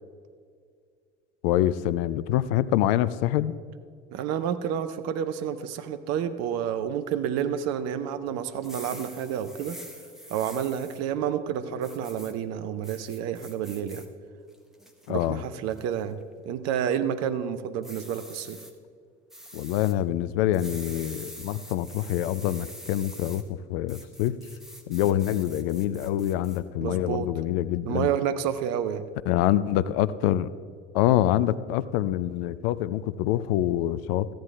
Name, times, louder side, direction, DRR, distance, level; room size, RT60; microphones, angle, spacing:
voice 1, 1.4-3.6 15.1-15.4 19.5-24.4 24.9-28.1 29.3-30.5 30.9-34.3, left 13 dB, 55° left, 16 dB, 0.5 m, -25 dB
voice 2, 4.1-9.8 10.3-14.0 15.1-16.2 16.5-18.6 26.8-27.3 27.9-29.1, right 9 dB, 45° right, 11 dB, 0.7 m, -29 dB
sound 1, 8.6-11.0 11.8-12.3 12.8-14.1 14.5-15.1 15.7-16.0 17.8-18.7 19.3-19.9 20.5-23.4 23.9-26.6, equal, ahead, 1.2 m, -45 dB
14.5 x 10.0 x 3.4 m, 2.2 s
figure-of-eight pair, 60°, 35 cm